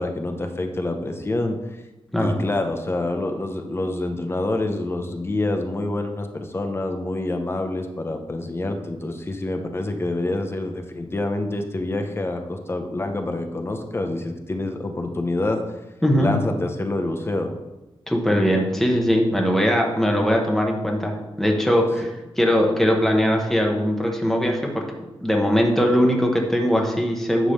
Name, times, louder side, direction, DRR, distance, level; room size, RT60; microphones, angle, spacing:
voice 1, 0.0-1.8 2.2-15.6 16.2-17.6, left 2 dB, 25° left, 5 dB, 0.8 m, -27 dB
voice 2, 18.1-22.1 22.4-24.8 25.2-27.5, equal, 5° left, 1 dB, 1.2 m, -20 dB
10.0 x 3.7 x 6.6 m, 1.0 s
wide cardioid pair, 165°, 10 cm